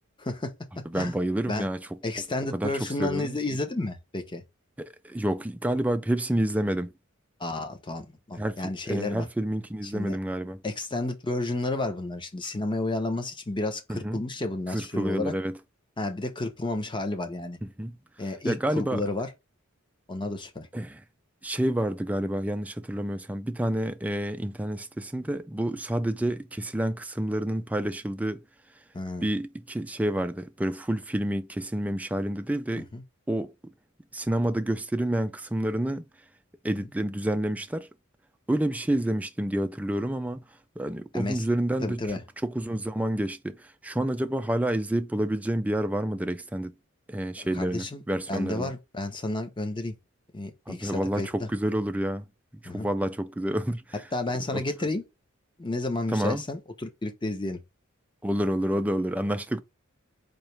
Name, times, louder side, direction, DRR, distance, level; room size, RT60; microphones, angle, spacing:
voice 1, 0.2-0.5 0.9-1.1 1.5-1.7 2.0-4.4 7.4-9.3 9.8-10.2 10.6-15.3 16.0-17.6 18.2-19.3 20.1-20.7 28.9-29.3 32.7-33.0 41.1-41.4 41.8-42.2 47.4-48.0 48.3-49.9 50.3-51.5 52.6-52.9 54.1-55.0 55.6-57.6, left 2 dB, 25° left, 0.8 m, -31 dB
voice 2, 0.9-1.8 2.5-2.7 3.0-3.3 4.8-6.9 8.4-10.6 13.9-14.2 14.7-15.5 17.8-17.9 18.5-19.0 20.7-21.0 21.4-28.4 29.2-32.9 33.3-33.5 34.1-36.0 36.6-37.9 38.5-40.4 40.8-42.0 42.4-43.6 43.8-46.7 47.1-48.7 50.7-52.3 52.7-53.8 54.5-54.6 56.1-56.4 58.2-59.6, right 1 dB, 5° right, 0.4 m, -28 dB
4.1 x 2.8 x 3.2 m
head